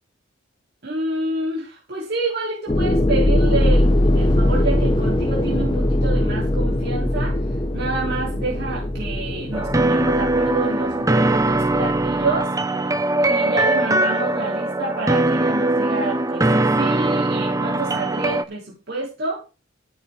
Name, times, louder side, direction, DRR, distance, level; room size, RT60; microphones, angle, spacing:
voice 1, 0.8-7.4 7.7-12.5 13.2-19.4, right 3 dB, 55° right, -3 dB, 3.1 m, -28 dB
sound 1, 2.7-12.4, left 1 dB, 25° left, 0.8 m, -21 dB
sound 2, 9.5-18.4, right 2 dB, 15° right, 0.7 m, -21 dB
14.0 x 8.9 x 3.6 m, 0.29 s
head